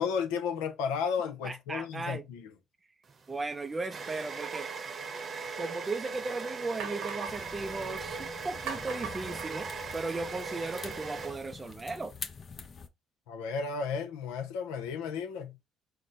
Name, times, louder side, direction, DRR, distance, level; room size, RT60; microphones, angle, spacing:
voice 1, 0.0-2.5 13.3-15.6, left 6 dB, 80° left, 0.7 m, -33 dB
voice 2, 1.4-2.3 3.3-4.7 5.6-12.1, right 3 dB, 30° right, 0.4 m, -36 dB
sound 1, 3.1-11.8, right 5 dB, 45° right, 0.8 m, -39 dB
sound 2, 6.2-6.3 6.8-7.6 8.7-10.2, right 7 dB, 75° right, 0.9 m, -41 dB
sound 3, 7.3-12.9, left 5 dB, 45° left, 0.8 m, -46 dB
4.9 x 2.1 x 4.2 m
hypercardioid pair, 55°, 0 cm